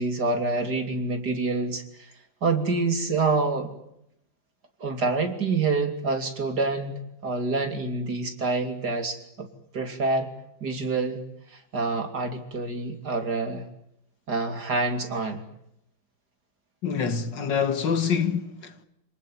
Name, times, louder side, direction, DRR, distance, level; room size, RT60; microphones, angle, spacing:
voice 1, 0.0-2.1 2.4-3.7 4.8-9.5 9.7-10.3 10.6-13.7 14.3-15.4, right 3 dB, 55° right, 3.6 m, -27 dB
voice 2, 16.8-18.8, left 6 dB, 65° left, 2.4 m, -26 dB
28.0 x 19.0 x 9.4 m
omnidirectional pair, 2.1 m